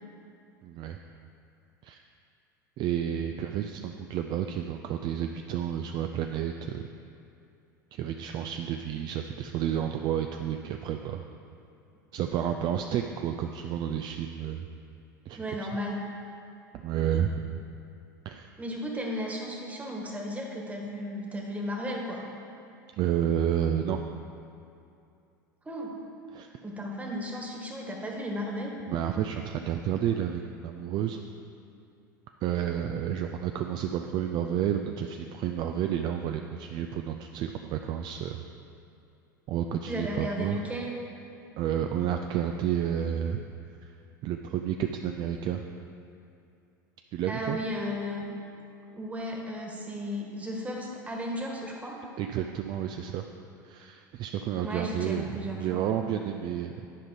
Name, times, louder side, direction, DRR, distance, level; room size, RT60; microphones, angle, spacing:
voice 1, 0.6-1.0 1.8-2.0 2.8-6.8 7.9-11.2 12.1-14.7 15.3-15.4 16.7-17.3 18.3-18.5 23.0-24.0 26.3-26.5 28.9-31.2 32.4-38.5 39.5-40.6 41.6-43.4 44.2-45.6 47.1-47.6 52.2-53.2 53.6-56.9, right 9 dB, 45° right, 5 dB, 0.4 m, -30 dB
voice 2, 15.4-16.0 18.6-22.2 25.6-26.0 26.6-28.8 39.9-41.0 47.2-48.3 48.9-52.0 54.6-55.8, equal, 15° right, -1 dB, 1.5 m, -34 dB
10.5 x 5.1 x 3.9 m, 2.6 s
hypercardioid pair, 85°, 11 cm